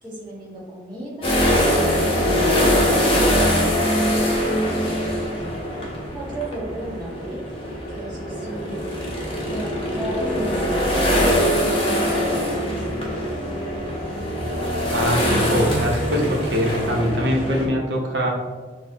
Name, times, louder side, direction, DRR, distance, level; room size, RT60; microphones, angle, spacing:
voice 1, 0.0-1.4 2.0-3.2 3.9-4.4 6.1-7.4 7.9-8.8 9.5-12.8 14.0-14.1, right 1 dB, 25° right, -6 dB, 1.2 m, -34 dB
sound 1, 1.2-17.6, equal, 30° left, 0.8 m, -22 dB
voice 2, 14.9-18.3, equal, 70° right, -1 dB, 0.8 m, -23 dB
6.3 x 2.1 x 2.7 m, 1.4 s
head